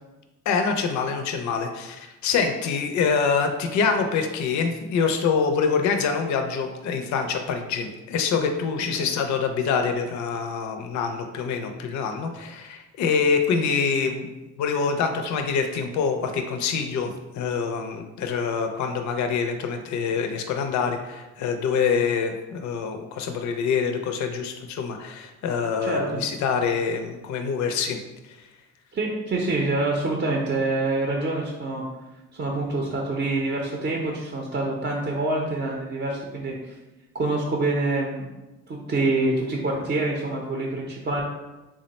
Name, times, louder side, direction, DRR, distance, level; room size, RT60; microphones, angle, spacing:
voice 1, 0.5-14.3 14.6-28.0, left 5 dB, 70° left, 5 dB, 0.5 m, -25 dB
voice 2, 25.8-26.2 28.9-31.8 32.3-36.7 37.1-38.3 38.7-41.2, right 2 dB, 35° right, -1 dB, 0.6 m, -26 dB
3.6 x 2.1 x 4.0 m, 1.1 s
cardioid pair, 90°, 30 cm